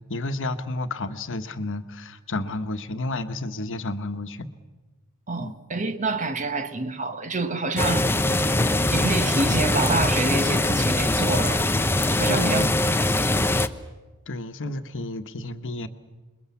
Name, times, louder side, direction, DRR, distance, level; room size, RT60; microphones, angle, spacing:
voice 1, 0.0-4.5 5.4-5.5 12.3-12.8 14.3-15.9, left 2 dB, 60° left, 1.2 m, -31 dB
voice 2, 5.3-8.1 8.9-11.6 12.1-12.7 13.1-13.3, right 3 dB, 35° right, 1.3 m, -27 dB
sound 1, 7.8-13.7, left 1 dB, 10° left, 0.7 m, -22 dB
28.0 x 22.0 x 7.1 m
head